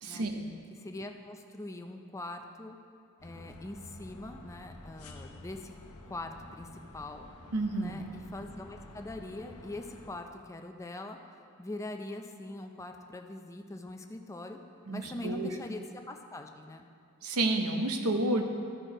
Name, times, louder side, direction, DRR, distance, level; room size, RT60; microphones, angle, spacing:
voice 1, 0.0-0.5 7.5-8.0 14.9-15.6 17.2-18.4, right 2 dB, 80° right, 5 dB, 0.8 m, -30 dB
voice 2, 0.7-2.8 3.2-5.7 6.1-7.3 7.8-11.2 11.6-14.6 14.9-16.8, left 2 dB, 15° left, 4 dB, 0.4 m, -42 dB
sound 1, 3.2-10.1, left 1 dB, 80° left, 0.9 m, -50 dB
13.0 x 4.5 x 5.0 m, 2.3 s
head